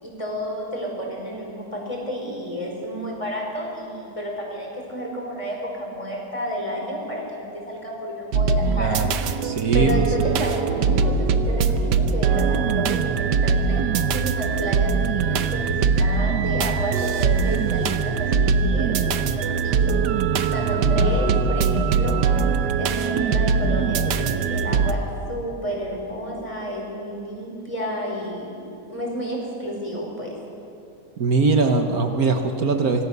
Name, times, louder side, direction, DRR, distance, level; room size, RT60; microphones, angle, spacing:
voice 1, 0.0-9.1 9.7-20.0 20.5-22.2 22.8-28.6 28.9-30.4, equal, 20° left, -1 dB, 5.1 m, -31 dB
sound 1, 8.3-24.9, right 5 dB, 85° right, 1.5 m, -22 dB
voice 2, 8.8-9.2 9.4-10.4 10.8-11.0 15.7-15.8 20.8-20.9 31.2-33.1, right 4 dB, 60° right, 5 dB, 1.6 m, -22 dB
25.5 x 18.5 x 6.9 m, 2.6 s
omnidirectional pair, 1.8 m